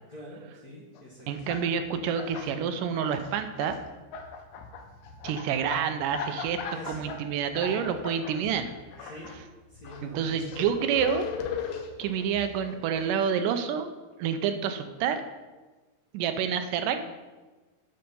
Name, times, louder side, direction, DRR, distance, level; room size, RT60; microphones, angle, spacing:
voice 1, 0.1-1.5 6.7-7.1 9.0-9.3 9.7-10.6, left 1 dB, 40° left, -5 dB, 1.4 m, -45 dB
sound 1, 0.9-1.0 1.3-2.5 2.8-3.8 4.1-9.4 9.7-13.0, left 5 dB, 75° left, 2.1 m, -38 dB
voice 2, 1.3-3.8 5.2-6.6 6.9-8.7 9.0-9.1 10.0-11.3 12.0-13.9 14.2-15.2 16.1-17.0, right 7 dB, 80° right, 8 dB, 2.2 m, -28 dB
8.7 x 6.3 x 5.4 m, 1.2 s
omnidirectional pair, 3.7 m